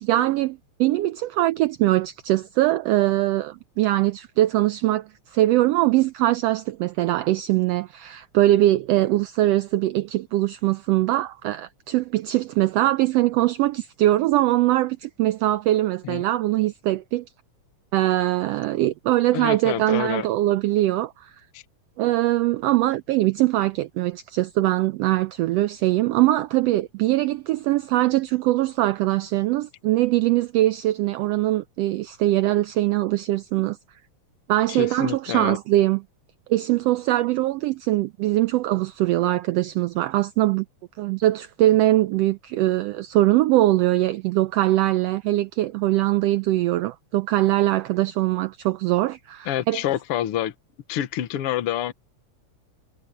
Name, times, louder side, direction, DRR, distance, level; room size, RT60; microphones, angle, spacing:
voice 1, 0.0-17.2 17.9-21.3 22.0-33.8 34.5-36.0 36.5-40.6 41.0-49.8, right 15 dB, 90° right, 1.4 m, -22 dB
voice 2, 19.3-20.3 21.5-21.6 34.7-35.6 49.5-50.5 50.9-51.9, left 11 dB, 60° left, 1.7 m, -27 dB
omnidirectional pair, 3.4 m